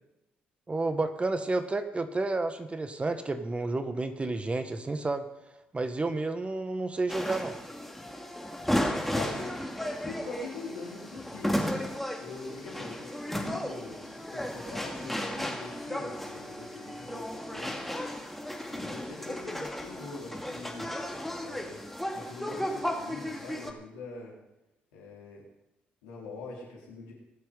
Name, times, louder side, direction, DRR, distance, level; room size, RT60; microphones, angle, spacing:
voice 1, 0.7-5.3 5.7-7.5, right 2 dB, 25° right, 9 dB, 1.6 m, -30 dB
sound 1, 7.1-23.7, equal, 5° left, 2.4 m, -34 dB
voice 2, 9.1-9.6 10.0-11.8 12.2-17.3 17.5-17.8 18.7-20.9 21.4-21.8 22.1-24.4 24.9-25.4 26.0-27.1, left 3 dB, 85° left, -3 dB, 4.5 m, -43 dB
22.5 x 7.7 x 5.5 m, 0.95 s
hypercardioid pair, 50°, 4 cm